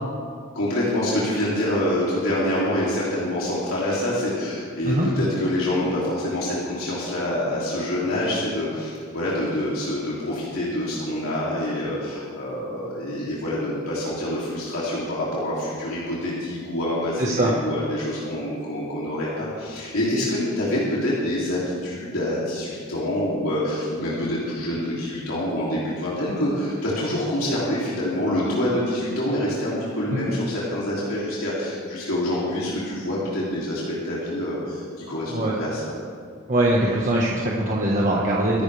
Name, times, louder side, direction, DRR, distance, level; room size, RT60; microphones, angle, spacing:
voice 1, 0.5-35.8, left 1 dB, 90° left, -7 dB, 3.1 m, -26 dB
voice 2, 17.2-17.5 35.3-35.6 36.5-38.6, right 1 dB, 40° right, -3 dB, 1.5 m, -22 dB
24.0 x 12.0 x 3.5 m, 2.2 s
head